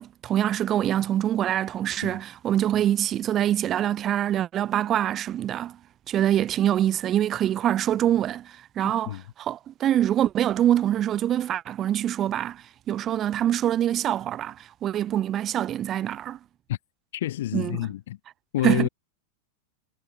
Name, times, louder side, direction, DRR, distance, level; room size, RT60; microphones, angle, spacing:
voice 1, 0.0-5.8 6.1-14.6 14.8-16.4 17.5-17.8 18.6-18.9, right 11 dB, 30° right, 1.0 m, -25 dB
voice 2, 8.8-9.2 16.7-16.8 17.1-18.2 18.5-18.9, left 14 dB, 55° left, 1.7 m, -29 dB
figure-of-eight pair, 90°, 0 cm